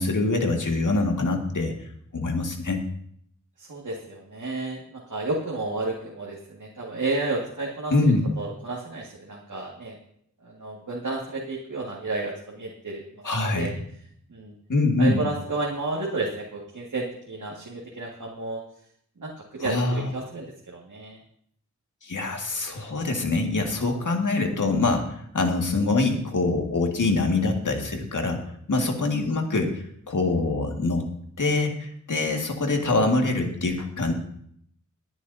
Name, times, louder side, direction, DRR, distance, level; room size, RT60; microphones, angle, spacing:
voice 1, 0.0-1.7 2.1-2.8 7.9-8.3 13.2-13.8 14.7-15.2 19.6-20.1 22.0-28.4 28.7-31.0 31.4-34.1, left 3 dB, 75° left, 2 dB, 2.0 m, -24 dB
voice 2, 3.7-7.9 8.4-9.9 10.4-13.0 13.6-13.7 14.3-14.5 15.0-18.6 19.2-21.2 28.7-28.9, right 2 dB, 75° right, -3 dB, 2.0 m, -31 dB
21.0 x 10.0 x 2.7 m, 0.68 s
wide cardioid pair, 85°, 31 cm